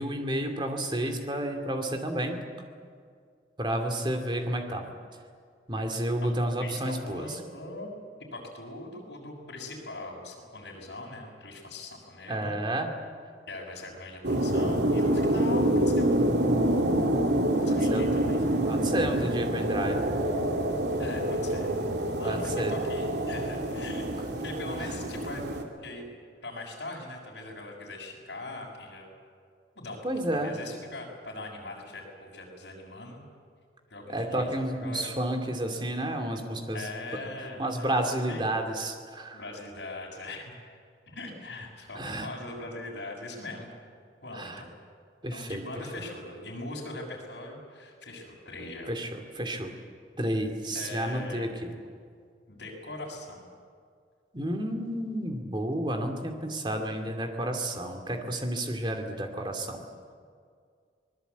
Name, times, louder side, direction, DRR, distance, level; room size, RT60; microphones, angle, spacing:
voice 1, 0.0-2.4 3.6-4.8 5.7-7.4 12.3-12.9 17.7-18.1 18.7-20.1 22.2-22.7 30.0-30.5 34.1-36.9 37.6-39.4 41.9-42.3 44.3-44.6 45.2-45.6 48.9-49.7 50.2-51.5 54.3-59.8, right 1 dB, 25° right, 4 dB, 2.6 m, -31 dB
voice 2, 6.2-7.9 8.3-12.6 13.5-16.4 17.6-18.4 20.9-21.7 22.1-25.4 25.8-26.1 26.4-29.1 29.7-33.2 33.9-35.1 36.7-38.0 38.3-38.4 39.3-40.5 41.1-43.7 44.2-44.7 45.3-48.9 50.7-51.5 52.5-53.5, left 2 dB, 75° left, -2 dB, 6.3 m, -41 dB
sound 1, 14.2-25.6, right 1 dB, 75° right, 2.7 m, -27 dB
25.5 x 20.0 x 8.3 m, 2.1 s
head